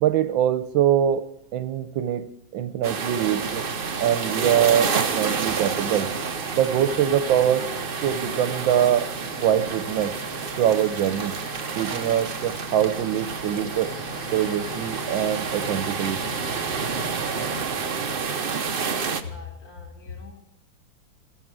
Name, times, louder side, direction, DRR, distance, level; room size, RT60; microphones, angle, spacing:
voice 1, 0.0-1.3 1.5-2.3 2.5-3.7 4.0-6.1 6.5-7.7 8.0-9.1 9.4-10.1 10.6-11.3 11.8-13.9 14.3-16.2, right 10 dB, 85° right, 13 dB, 1.5 m, -23 dB
sound 1, 2.8-19.2, right 5 dB, 50° right, 0.6 m, -29 dB
sound 2, 3.4-17.6, left 3 dB, 75° left, 2.5 m, -40 dB
voice 2, 18.5-20.4, left 5 dB, 50° left, 0 dB, 3.2 m, -41 dB
15.5 x 13.0 x 4.8 m, 0.78 s
omnidirectional pair, 2.1 m